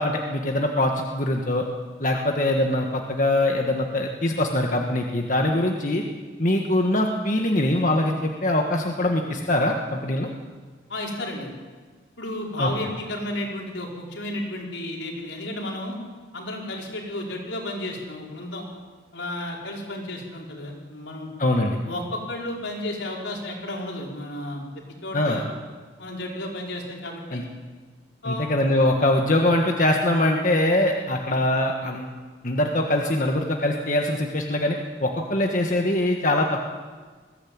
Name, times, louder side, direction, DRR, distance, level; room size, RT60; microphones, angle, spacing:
voice 1, 0.0-1.6 2.0-6.0 6.4-10.3 12.6-12.7 21.4-21.8 25.1-25.4 27.3-27.4 28.2-32.1 32.4-34.7 35.0-36.7, left 1 dB, 40° left, 1 dB, 1.6 m, -23 dB
voice 2, 10.9-11.5 12.2-16.0 16.3-18.6 19.1-21.3 21.7-25.4 26.0-27.5 28.2-28.5 31.3-31.4, left 1 dB, 80° left, -1 dB, 5.0 m, -33 dB
20.5 x 16.0 x 8.8 m, 1.5 s
head